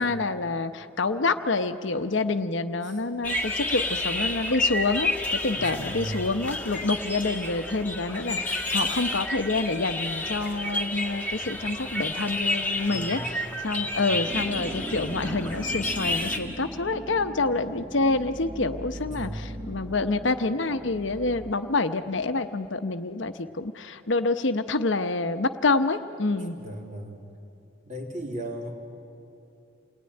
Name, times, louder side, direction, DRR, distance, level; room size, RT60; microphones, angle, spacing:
voice 1, 0.0-13.3 13.6-26.6, left 3 dB, 65° left, 9 dB, 0.9 m, -27 dB
sound 1, 3.2-16.4, left 2 dB, 10° left, 2.1 m, -30 dB
voice 2, 5.5-6.2 12.9-13.3 14.0-14.1 19.1-19.4 26.6-27.2 27.9-28.7, right 1 dB, 40° right, 1 dB, 3.4 m, -36 dB
sound 2, 14.2-21.5, right 1 dB, 20° right, 0.8 m, -39 dB
28.0 x 19.0 x 9.8 m, 2.8 s
head